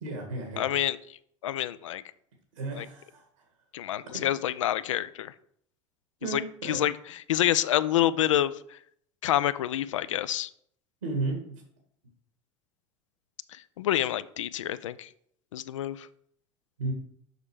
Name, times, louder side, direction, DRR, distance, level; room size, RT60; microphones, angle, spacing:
voice 1, 0.0-0.7 2.5-3.2 4.1-4.2 6.2-6.8 11.0-11.6 16.8-16.9, right 3 dB, 85° right, 3 dB, 1.9 m, -33 dB
voice 2, 0.6-1.0 1.4-2.0 2.8-2.9 3.7-5.3 6.3-6.4 6.7-8.8 9.2-10.5 13.5-15.1 15.5-16.1, left 12 dB, 80° left, 16 dB, 0.5 m, -27 dB
6.5 x 5.9 x 4.9 m, 0.68 s
hypercardioid pair, 80°, 16 cm